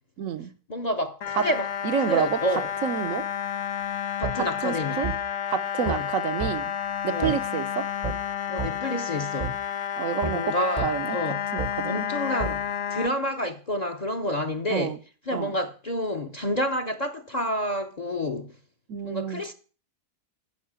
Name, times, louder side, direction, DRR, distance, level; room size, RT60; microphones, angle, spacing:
voice 1, 0.2-0.5 1.4-1.5 1.8-2.4 2.8-3.2 4.6-5.1 5.5-6.7 7.0-7.8 10.0-10.4 10.8-12.1 14.7-15.0 15.3-15.5 18.9-19.4, right 7 dB, 65° right, 1.0 m, -28 dB
voice 2, 0.7-1.7 2.1-2.7 4.2-5.0 5.8-6.1 7.1-7.4 8.5-9.5 10.2-11.4 11.9-15.0 15.3-18.5 19.0-19.5, equal, 35° left, 0.7 m, -29 dB
sound 1, 1.2-13.1, left 9 dB, 60° left, 1.0 m, -31 dB
sound 2, 4.2-4.4 5.0-5.2 5.8-6.0 6.4-6.5 7.2-7.4 8.0-8.2 8.6-8.7 9.4-9.5 10.2-10.4 10.8-10.9 11.6-11.7 12.4-12.5, right 4 dB, 35° right, 0.8 m, -30 dB
12.0 x 5.4 x 8.7 m
omnidirectional pair, 1.6 m